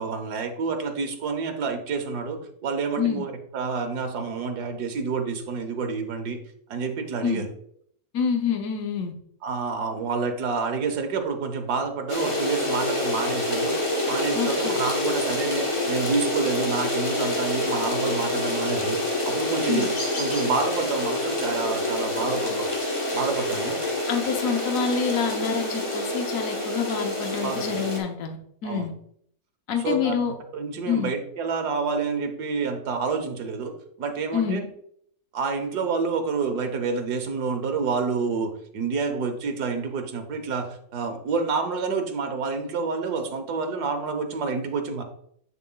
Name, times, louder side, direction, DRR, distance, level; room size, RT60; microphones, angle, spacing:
voice 1, 0.0-6.4 6.7-7.5 9.4-13.8 14.1-19.9 20.2-22.7 23.1-23.8 27.4-27.6 28.6-28.9 29.8-30.1 30.5-33.7 34.0-34.6 35.3-45.0, right 4 dB, 85° right, 5 dB, 1.5 m, -28 dB
voice 2, 8.1-9.1 14.3-14.8 19.7-19.9 24.1-28.4 28.6-28.9 29.7-30.3 30.9-31.1 34.3-34.6, left 6 dB, 60° left, 4 dB, 1.3 m, -27 dB
sound 1, 12.1-28.0, left 1 dB, 20° left, 1.1 m, -27 dB
7.6 x 7.1 x 2.3 m, 0.66 s
omnidirectional pair, 1.7 m